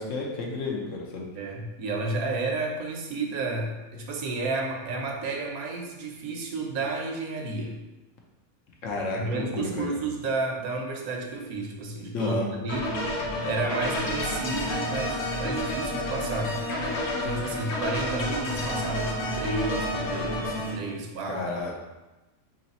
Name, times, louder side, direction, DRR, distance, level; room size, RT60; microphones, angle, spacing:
voice 1, 0.0-1.3 8.8-10.0 12.1-12.5 21.3-21.8, left 2 dB, 65° left, -1 dB, 1.0 m, -31 dB
voice 2, 1.4-7.8 9.1-13.2 13.4-16.9 17.2-21.4, right 3 dB, 85° right, 1 dB, 1.2 m, -32 dB
sound 1, 12.7-20.7, left 1 dB, 85° left, 1.3 m, -30 dB
3.2 x 3.0 x 4.1 m, 1.1 s
omnidirectional pair, 1.5 m